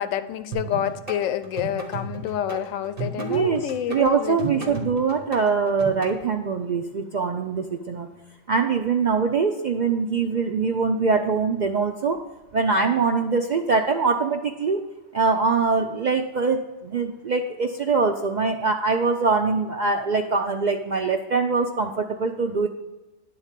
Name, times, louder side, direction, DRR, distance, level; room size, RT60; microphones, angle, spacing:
voice 1, 0.0-4.8, left 10 dB, 85° left, 12 dB, 1.0 m, -28 dB
sound 1, 0.5-6.1, right 3 dB, 45° right, 1.6 m, -34 dB
voice 2, 3.2-8.1 8.5-12.2 12.5-14.8 15.1-22.7, right 4 dB, 65° right, 4 dB, 0.4 m, -23 dB
10.5 x 3.9 x 7.3 m, 1.1 s
omnidirectional pair, 1.3 m